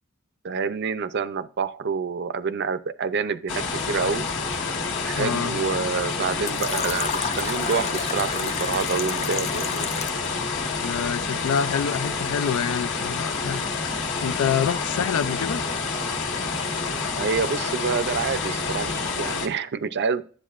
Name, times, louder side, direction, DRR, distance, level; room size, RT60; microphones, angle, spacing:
voice 1, 0.4-4.2 5.1-9.8 15.1-15.3 17.1-20.2, right 5 dB, 50° right, 0.5 m, -27 dB
sound 1, 3.5-19.5, left 4 dB, 60° left, 1.5 m, -28 dB
voice 2, 5.2-5.6 10.8-13.6 14.2-15.6, left 7 dB, 85° left, 0.4 m, -26 dB
Fill (with liquid), 6.5-10.3, left 5 dB, 30° left, 0.6 m, -31 dB
10.5 x 8.0 x 2.5 m
head